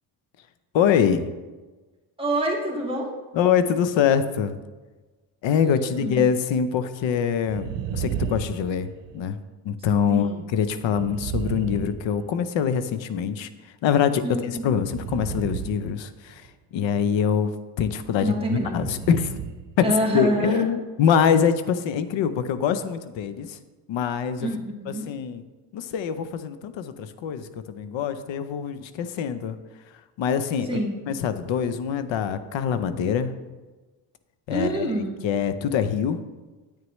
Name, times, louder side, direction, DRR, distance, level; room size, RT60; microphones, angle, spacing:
voice 1, 0.7-1.3 3.3-4.6 5.4-9.4 9.6-17.5 17.8-19.4 19.8-23.6 23.9-24.5 24.9-25.4 25.7-29.6 30.2-30.7 31.1-33.3 34.5-34.9 35.2-36.2, left 7 dB, 75° left, 11 dB, 0.8 m, -24 dB
voice 2, 2.2-3.1 5.6-6.2 10.1-10.4 14.2-14.7 18.2-18.7 19.8-20.6 24.4-25.1 30.7-31.0 34.5-35.1, right 1 dB, 10° right, -1 dB, 1.8 m, -26 dB
sound 1, 7.4-9.3 10.8-12.7 14.8-16.5 18.5-19.8 20.1-20.2, right 8 dB, 65° right, 0.8 m, -33 dB
9.5 x 8.5 x 3.1 m, 1.2 s
cardioid pair, 105°, 46 cm